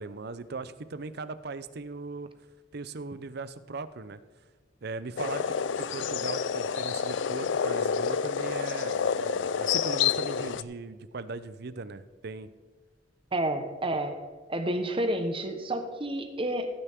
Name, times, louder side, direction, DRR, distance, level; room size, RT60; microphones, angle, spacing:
voice 1, 0.0-2.3 2.7-4.2 4.8-12.5, right 3 dB, 60° right, 13 dB, 0.6 m, -39 dB
sound 1, 5.2-10.6, left 7 dB, 75° left, 0.4 m, -29 dB
voice 2, 13.3-14.2 14.5-16.7, right 1 dB, 30° right, 7 dB, 1.1 m, -30 dB
16.5 x 10.0 x 3.7 m, 1.4 s
head